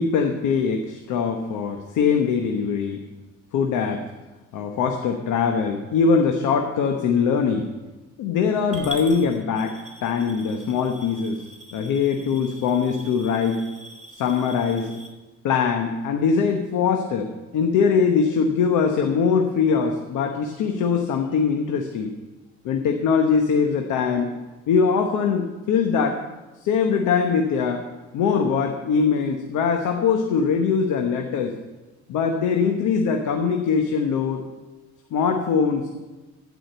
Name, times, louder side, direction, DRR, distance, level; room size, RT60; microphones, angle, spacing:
voice 1, 0.0-3.0 3.5-4.1 4.5-7.7 8.2-11.4 11.7-13.6 14.1-14.9 15.4-22.1 22.6-24.3 24.7-26.2 26.6-27.8 28.1-31.5 32.1-34.4 35.1-35.9, left 6 dB, 90° left, 4 dB, 1.0 m, -22 dB
Coin (dropping) / Glass, 8.7-15.1, right 1 dB, 25° right, 3.2 m, -42 dB
15.0 x 5.0 x 7.9 m, 1.2 s
cardioid pair, 90°, 30 cm